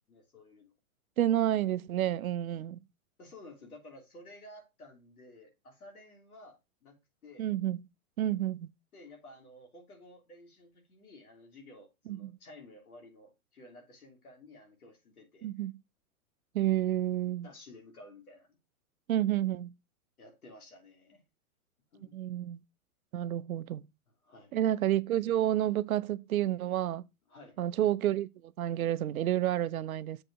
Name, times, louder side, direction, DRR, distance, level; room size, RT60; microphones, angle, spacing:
voice 1, 0.1-0.7 3.2-7.0 7.2-7.5 8.9-15.7 17.4-18.6 20.2-21.2 21.9-22.2 24.1-24.6 27.3-27.6, left 1 dB, 85° left, 3.2 m, -53 dB
voice 2, 1.2-2.8 7.4-7.8 8.2-8.7 12.1-12.3 15.4-15.7 16.5-17.5 19.1-19.7 22.1-22.6 23.1-23.9 24.5-27.0 27.6-30.2, right 12 dB, 75° right, 0.7 m, -30 dB
7.5 x 5.0 x 4.7 m
hypercardioid pair, 120°, 42 cm